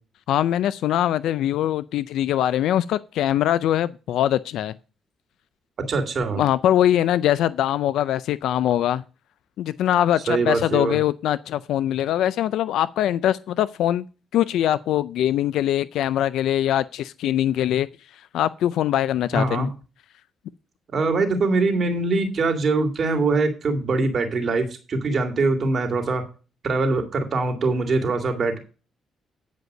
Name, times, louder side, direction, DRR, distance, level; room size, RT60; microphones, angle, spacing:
voice 1, 0.3-4.7 6.4-9.0 9.6-14.0 14.3-17.9 18.3-19.7, left 12 dB, 80° left, 0.4 m, -22 dB
voice 2, 5.9-6.4 10.3-11.0 19.3-19.7 20.9-26.2 26.6-28.6, right 3 dB, 50° right, 2.2 m, -23 dB
9.4 x 5.2 x 6.5 m
cardioid pair, 90°, 0 cm